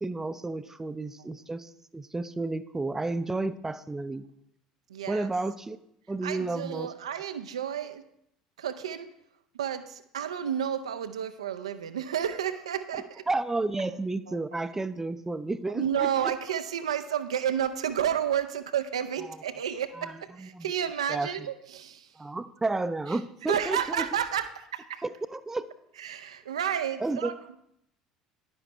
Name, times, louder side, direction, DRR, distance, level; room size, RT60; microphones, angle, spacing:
voice 1, 0.0-4.2 5.1-5.8 6.1-6.9 13.3-16.3 19.9-20.7 21.1-21.3 22.2-24.1 25.0-25.6 27.0-27.3, right 2 dB, 15° right, 13 dB, 0.5 m, -32 dB
voice 2, 4.9-5.3 6.2-8.0 8.6-9.1 9.5-13.2 14.3-14.4 15.7-22.1 23.5-25.0 26.0-27.6, right 9 dB, 75° right, 10 dB, 0.5 m, -31 dB
11.0 x 9.8 x 3.3 m, 0.77 s
figure-of-eight pair, 65°, 3 cm